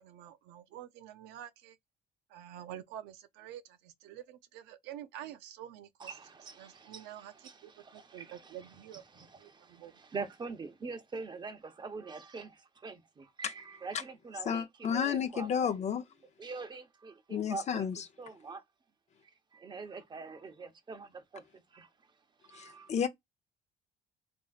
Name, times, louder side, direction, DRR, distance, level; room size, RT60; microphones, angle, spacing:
voice 1, 0.0-1.8 2.3-6.1 6.6-9.0 9.4-9.9, right 11 dB, 90° right, 0.5 m, -48 dB
voice 2, 6.0-15.7 16.4-17.9 18.2-18.6 19.5-21.9 22.5-22.9, right 4 dB, 25° right, 0.8 m, -44 dB
voice 3, 14.4-16.1 17.3-18.1 22.5-23.1, left 7 dB, 40° left, 0.6 m, -32 dB
3.1 x 2.5 x 2.3 m
cardioid pair, 110°, 17 cm